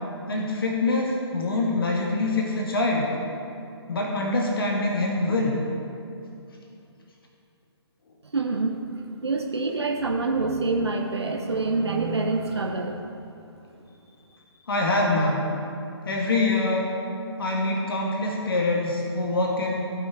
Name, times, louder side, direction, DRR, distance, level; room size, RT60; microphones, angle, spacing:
voice 1, 0.3-3.1 3.9-5.6 14.7-15.5 16.0-16.9 17.4-19.8, left 2 dB, 55° left, -1 dB, 1.6 m, -24 dB
voice 2, 8.3-8.8 9.2-13.0, right 3 dB, 75° right, 2 dB, 1.1 m, -26 dB
15.5 x 6.1 x 4.6 m, 2.6 s
figure-of-eight pair, 130°, 14 cm